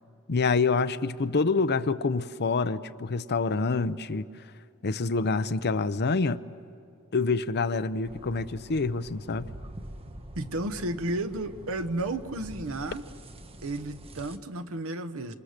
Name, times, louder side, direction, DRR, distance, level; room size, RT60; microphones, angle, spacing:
voice 1, 0.3-4.2 4.8-6.4 7.1-9.5, left 4 dB, 50° left, 0.7 m, -26 dB
sound 1, 8.0-14.4, right 1 dB, 25° right, 1.1 m, -45 dB
voice 2, 10.3-13.0 13.6-15.3, right 2 dB, 65° right, 1.1 m, -32 dB
28.0 x 26.5 x 6.7 m
head